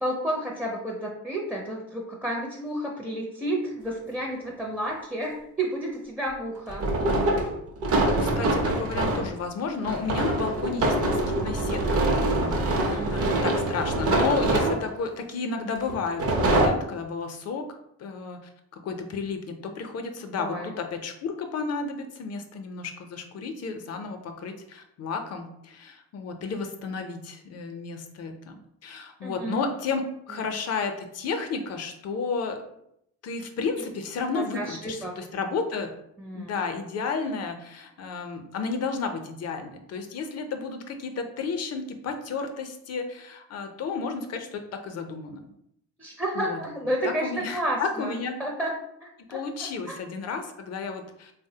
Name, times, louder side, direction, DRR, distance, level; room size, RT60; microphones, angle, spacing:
voice 1, 0.0-6.9 12.9-13.5 20.4-20.7 29.2-29.6 30.3-30.4 34.3-35.1 36.2-36.5 46.0-48.1 48.4-48.7 49.0-49.4 49.9-50.0, right 1 dB, 5° right, -2 dB, 0.5 m, -31 dB
sound 1, 4.0-4.1 6.7-9.3 9.8-15.1 15.9-16.7, right 2 dB, 50° right, 0.7 m, -24 dB
voice 2, 8.2-11.8 12.1-17.6 18.0-18.4 18.7-32.6 33.2-35.9 36.3-45.5 46.3-46.6 47.0-48.4 49.3-51.3, left 4 dB, 55° left, 6 dB, 0.5 m, -32 dB
3.4 x 2.0 x 2.7 m, 0.76 s
cardioid pair, 90°, 30 cm